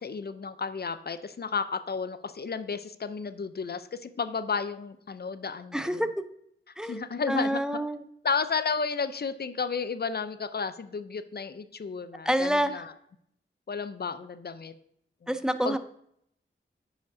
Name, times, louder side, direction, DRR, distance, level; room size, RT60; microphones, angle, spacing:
voice 1, 0.0-6.0 6.8-7.6 8.2-12.9 13.7-14.7 15.2-15.3 15.6-15.8, left 5 dB, 50° left, 12 dB, 0.5 m, -32 dB
voice 2, 5.7-6.1 6.8-7.0 7.3-8.0 12.3-12.8 15.3-15.8, equal, 5° right, 10 dB, 0.6 m, -27 dB
9.3 x 5.0 x 2.6 m, 0.72 s
cardioid pair, 50°, 21 cm